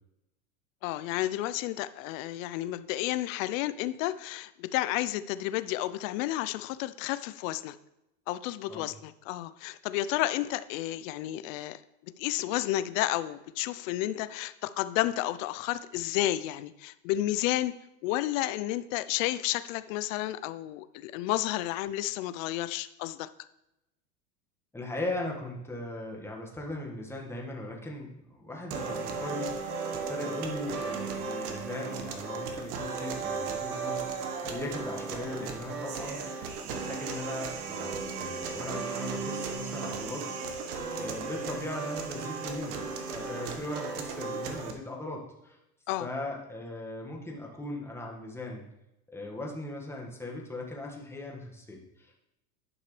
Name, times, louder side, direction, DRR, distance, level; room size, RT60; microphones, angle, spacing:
voice 1, 0.8-7.8 8.3-17.7 18.0-23.3 45.9-46.1, left 15 dB, 60° left, 14 dB, 0.6 m, -31 dB
voice 2, 24.7-36.4 36.7-40.3 40.9-45.6 46.0-48.7 49.1-52.2, left 2 dB, 5° left, -1 dB, 1.6 m, -39 dB
sound 1, 28.7-44.7, right 5 dB, 75° right, 1.3 m, -35 dB
10.5 x 5.7 x 3.2 m, 0.89 s
hypercardioid pair, 110°, 45 cm